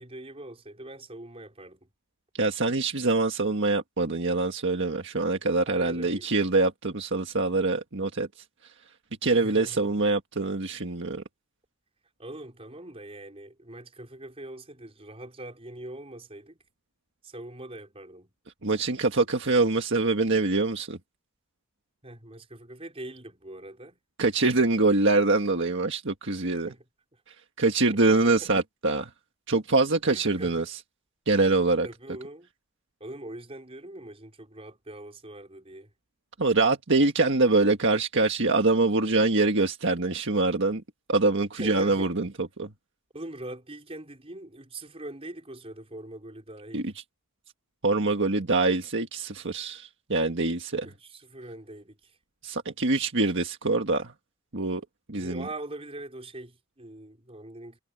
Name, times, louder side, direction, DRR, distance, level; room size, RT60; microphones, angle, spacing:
voice 1, 0.0-1.9 5.7-6.2 9.3-10.1 12.2-16.6 17.2-18.3 22.0-24.0 26.3-26.8 27.9-28.3 30.1-30.7 31.8-32.5 33.0-35.9 41.6-42.1 43.1-46.9 50.8-52.2 55.1-57.8, right 1 dB, 30° right, 4.8 m, -42 dB
voice 2, 2.3-8.3 9.2-11.2 18.6-21.0 24.2-26.7 27.6-29.1 29.5-30.8 31.3-31.9 36.4-40.8 41.1-42.7 46.7-46.9 47.8-50.9 52.4-54.1 54.5-54.8 55.1-55.5, right 3 dB, 60° right, 1.6 m, -24 dB
head